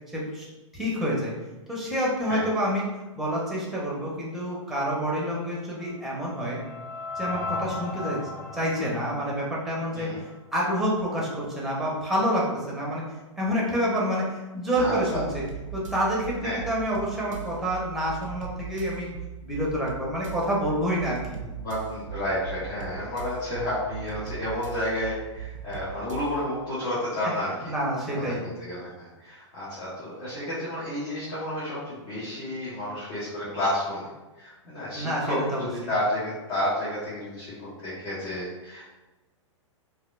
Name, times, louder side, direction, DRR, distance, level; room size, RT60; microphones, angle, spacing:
voice 1, 0.1-0.4 0.7-1.3 1.7-2.9 3.2-6.6 7.2-8.2 8.5-10.1 10.5-13.0 13.4-15.4 15.7-19.1 19.4-21.4 27.7-28.4 34.9-35.7, equal, ahead, -4 dB, 0.9 m, -28 dB
sound 1, 5.4-10.5, left 3 dB, 25° left, 1.0 m, -37 dB
voice 2, 14.8-15.2 16.4-16.6 21.6-27.5 28.3-34.1 34.3-38.8, left 1 dB, 45° left, -9 dB, 1.2 m, -31 dB
sound 2, 14.8-26.5, right 8 dB, 80° right, 0.4 m, -39 dB
3.4 x 2.4 x 2.4 m, 1.1 s
figure-of-eight pair, 105°, 16 cm